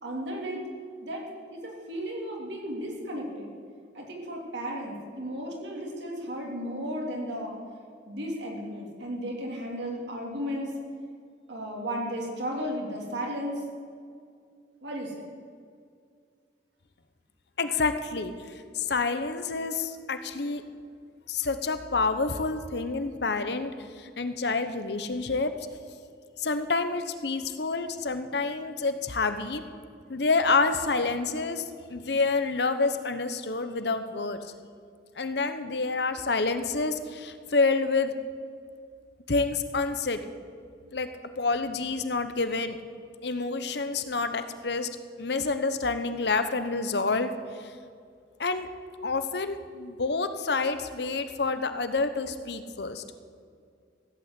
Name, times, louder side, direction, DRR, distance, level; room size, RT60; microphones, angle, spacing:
voice 1, 0.0-0.6 1.0-1.2 1.5-3.5 3.9-7.6 8.1-10.7 11.5-13.6 14.8-15.3, equal, 70° right, -1 dB, 3.2 m, -34 dB
voice 2, 17.6-20.6 21.3-25.5 26.4-29.6 30.1-34.4 35.2-38.1 39.3-40.2 40.9-41.1 41.4-42.8 43.2-44.9 45.2-47.3 47.6-47.7 48.4-48.7 49.0-53.0, left 3 dB, 60° left, 10 dB, 0.9 m, -28 dB
15.0 x 8.7 x 8.2 m, 2.2 s
head